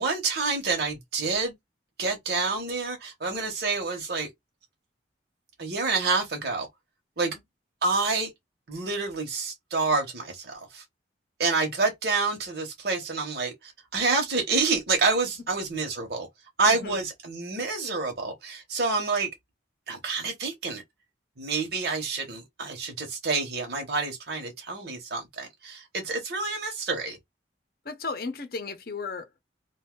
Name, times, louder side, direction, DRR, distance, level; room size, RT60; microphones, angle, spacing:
voice 1, 0.0-1.5 2.0-4.3 5.6-6.7 7.2-7.3 7.8-8.3 8.7-10.8 11.4-16.3 16.6-19.3 19.9-20.8 21.4-27.2, right 3 dB, 55° right, 0.9 m, -28 dB
voice 2, 16.7-17.0 27.8-29.4, left 4 dB, 50° left, 0.7 m, -35 dB
2.6 x 2.3 x 3.7 m
head